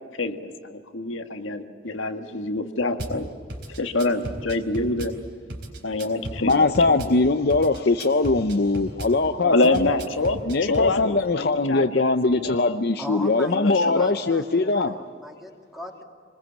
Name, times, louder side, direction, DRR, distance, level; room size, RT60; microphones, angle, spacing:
voice 1, 0.2-3.3 3.8-5.1 5.8-6.7 7.1-7.2 9.4-12.8 13.5-14.1, left 2 dB, 85° left, 6 dB, 1.6 m, -26 dB
Drum kit / Bass drum, 3.0-3.2 3.5-5.2 5.5-7.2 7.5-9.2 9.6-10.9, right 1 dB, 55° right, 4.1 m, -35 dB
voice 2, 6.4-9.8 10.5-14.9, left 3 dB, 55° left, 7 dB, 0.7 m, -21 dB
voice 3, 13.0-16.0, equal, ahead, 2 dB, 2.5 m, -38 dB
26.5 x 20.5 x 8.5 m, 2.2 s
head